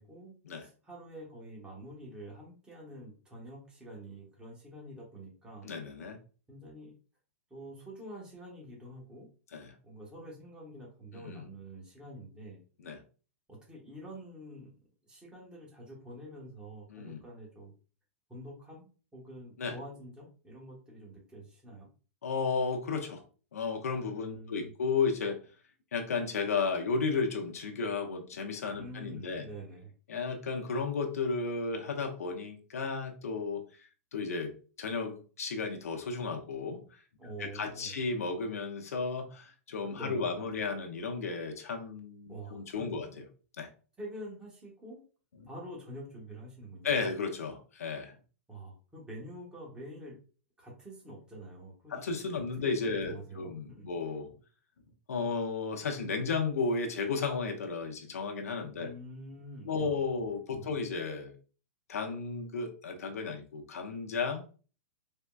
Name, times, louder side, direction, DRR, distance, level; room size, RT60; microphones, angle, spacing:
voice 1, 0.0-0.4 0.6-5.7 6.5-6.9 7.5-9.3 9.8-12.6 13.5-14.7 15.0-17.7 18.3-21.9 24.1-24.7 28.8-29.9 37.2-38.0 39.9-40.3 42.3-43.0 44.0-45.0 45.5-47.1 48.5-50.2 50.6-52.0 52.6-53.9 58.8-60.0 60.5-60.8, right 1 dB, 10° right, -3 dB, 1.1 m, -47 dB
voice 2, 5.6-6.2 9.5-9.7 11.1-11.5 12.8-13.0 16.9-17.2 19.6-19.8 22.2-23.2 23.5-25.4 25.9-29.5 30.1-33.6 34.1-34.5 34.8-37.0 37.4-43.2 43.6-43.7 46.8-48.1 51.9-54.3 55.1-58.9 59.6-61.3 61.9-64.4, left 4 dB, 85° left, 4 dB, 0.6 m, -33 dB
3.5 x 2.1 x 2.3 m, 0.37 s
hypercardioid pair, 125°, 8 cm